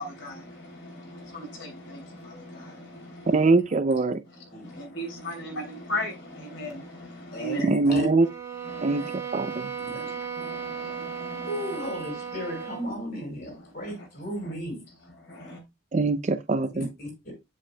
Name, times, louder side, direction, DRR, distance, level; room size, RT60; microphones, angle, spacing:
voice 1, 0.0-3.5 4.4-7.7 8.6-9.1 9.5-9.7 10.0-11.5 14.0-14.1 14.4-14.5 15.3-15.6, equal, 70° left, 3.0 m, -38 dB
voice 2, 3.3-4.2 7.6-8.3 8.8-9.0 9.3-9.7 15.9-16.9, right 3 dB, 35° right, 0.4 m, -22 dB
voice 3, 7.3-8.1 9.8-10.1 11.5-14.8 16.7-17.3, equal, 55° left, 4.8 m, -35 dB
sound 1, 8.2-12.9, right 7 dB, 15° right, 1.7 m, -36 dB
8.2 x 7.4 x 2.2 m
head